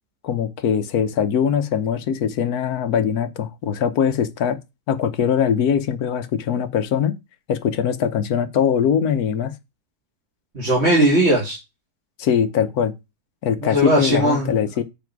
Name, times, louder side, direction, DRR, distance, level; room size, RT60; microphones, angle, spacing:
voice 1, 0.2-4.6 4.9-7.2 7.5-9.5 12.2-12.9 13.4-14.8, left 8 dB, 70° left, 1.4 m, -21 dB
voice 2, 10.5-11.6 13.6-14.6, right 1 dB, 40° right, 2.7 m, -18 dB
7.2 x 5.1 x 4.6 m
omnidirectional pair, 1.7 m